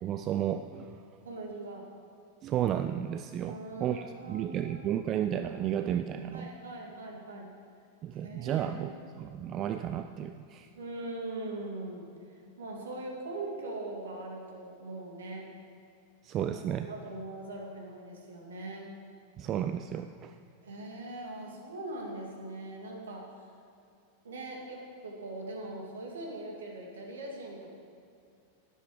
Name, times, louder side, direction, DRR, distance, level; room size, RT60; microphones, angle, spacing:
voice 1, 0.0-1.0 2.4-6.5 8.0-10.7 16.2-16.9 19.4-20.4, right 10 dB, 30° right, 9 dB, 0.4 m, -33 dB
voice 2, 1.2-1.8 3.4-4.9 6.3-7.5 8.2-9.0 10.8-12.1 12.6-15.4 16.4-16.5 16.8-18.9 20.6-23.3 24.2-27.8, right 2 dB, 65° right, 0 dB, 2.5 m, -41 dB
12.0 x 11.5 x 5.0 m, 2.5 s
figure-of-eight pair, 90°, 0 cm